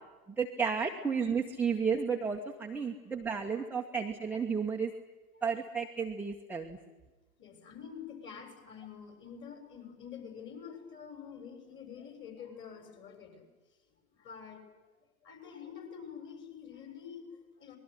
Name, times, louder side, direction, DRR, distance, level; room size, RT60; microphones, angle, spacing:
voice 1, 0.4-4.9 5.4-6.8, right 6 dB, 5° right, 1 dB, 1.3 m, -32 dB
voice 2, 7.4-13.5 13.9-14.7 15.2-17.8, left 7 dB, 25° left, 6 dB, 6.9 m, -47 dB
25.5 x 21.0 x 10.0 m, 1.2 s
figure-of-eight pair, 105°, 43 cm